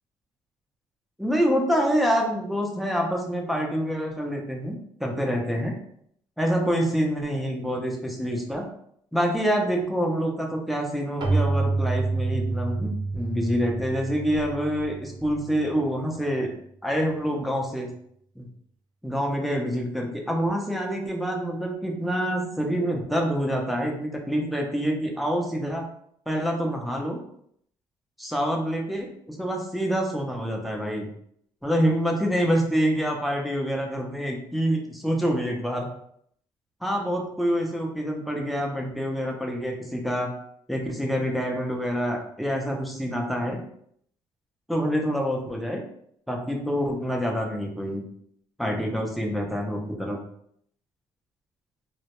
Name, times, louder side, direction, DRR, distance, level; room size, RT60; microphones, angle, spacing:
voice 1, 1.2-5.7 6.4-8.7 9.1-16.5 16.8-17.9 18.4-18.5 19.0-25.9 26.3-27.2 28.2-31.1 31.6-35.9 36.8-40.3 40.7-43.6 44.7-45.8 46.3-48.0 48.6-50.2, equal, ahead, 0 dB, 0.5 m, -26 dB
Keyboard (musical), 11.2-15.7, right 3 dB, 55° right, 0.5 m, -28 dB
2.1 x 2.1 x 2.9 m, 0.68 s
cardioid pair, 85°, 10 cm